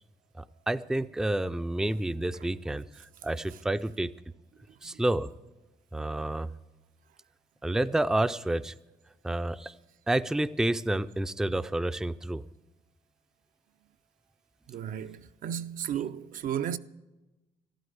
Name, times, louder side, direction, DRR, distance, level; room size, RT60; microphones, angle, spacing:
voice 1, 0.4-2.8 3.2-4.1 4.8-5.3 5.9-6.5 7.6-8.7 9.2-9.7 10.1-12.4, right 1 dB, 5° right, 0.4 m, -29 dB
voice 2, 14.7-16.8, right 9 dB, 70° right, 0.6 m, -34 dB
13.0 x 12.0 x 7.9 m
cardioid pair, 95°, 15 cm